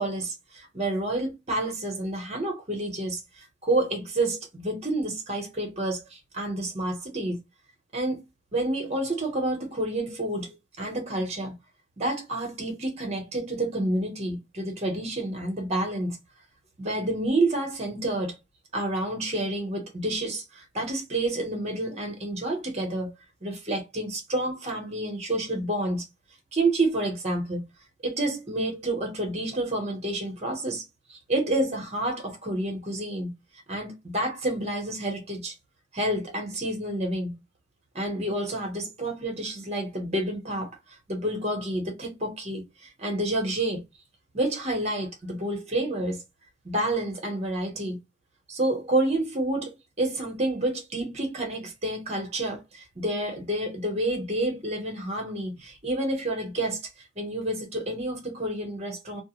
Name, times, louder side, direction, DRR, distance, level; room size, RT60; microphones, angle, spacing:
voice 1, 0.0-3.2 3.6-7.4 7.9-8.2 8.5-11.5 12.0-16.2 16.8-18.3 18.7-23.1 23.4-26.0 26.5-27.7 28.0-30.8 31.1-33.3 33.7-35.5 35.9-37.4 37.9-40.7 41.1-42.6 43.0-43.8 44.3-46.2 46.6-48.0 48.5-56.8 57.2-59.2, right 1 dB, 35° right, 1.0 m, -29 dB
2.4 x 2.4 x 2.9 m
head